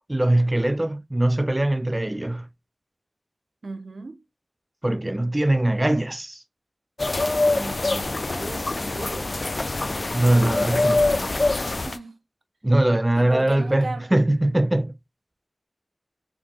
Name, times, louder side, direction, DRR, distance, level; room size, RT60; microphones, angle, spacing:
voice 1, 0.1-2.5 4.8-6.4 10.1-11.1 12.6-14.9, right 1 dB, 25° right, 0.4 m, -21 dB
voice 2, 3.6-4.2 7.5-9.4 10.5-11.5 11.8-12.2 13.1-14.1, right 3 dB, 85° right, 0.5 m, -37 dB
sound 1, 7.0-12.0, left 2 dB, 60° left, 0.3 m, -24 dB
4.4 x 2.8 x 2.8 m
wide cardioid pair, 40°, 0 cm